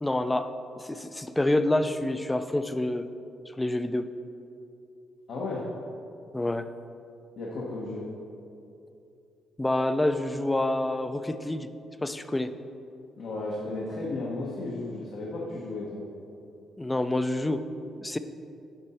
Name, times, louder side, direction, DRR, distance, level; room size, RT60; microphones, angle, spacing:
voice 1, 0.0-0.5 0.8-3.1 3.6-4.1 6.3-6.7 9.6-11.7 12.0-12.5 16.8-17.6 17.9-18.2, left 1 dB, 10° left, 11 dB, 0.4 m, -27 dB
voice 2, 5.3-5.7 7.4-8.1 13.2-16.0, left 2 dB, 70° left, -4 dB, 1.1 m, -34 dB
7.6 x 5.4 x 4.3 m, 2.6 s
cardioid pair, 90°, 0 cm